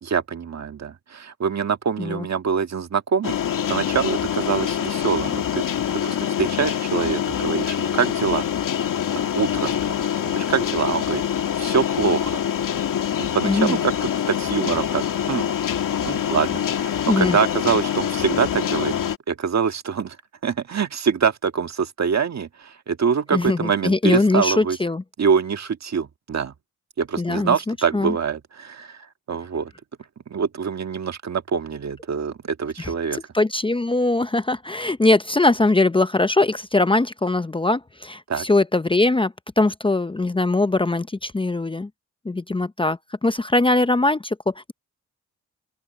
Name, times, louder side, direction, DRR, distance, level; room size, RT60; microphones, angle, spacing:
voice 1, 0.0-3.4 3.7-8.5 9.1-11.2 11.6-12.4 13.2-13.9 14.3-15.5 16.0-19.0 19.3-20.2 20.4-24.8 25.2-26.5 27.0-29.7 30.3-33.2 38.3-38.5, right 6 dB, 55° right, 1.7 m, -24 dB
sound 1, 3.2-19.2, left 9 dB, 80° left, 2.3 m, -25 dB
voice 2, 13.4-13.8 17.1-17.4 23.3-25.0 27.2-28.1 32.8-32.9 33.3-41.9 42.2-44.7, left 2 dB, 15° left, 0.7 m, -21 dB
open air
cardioid pair, 80°, 32 cm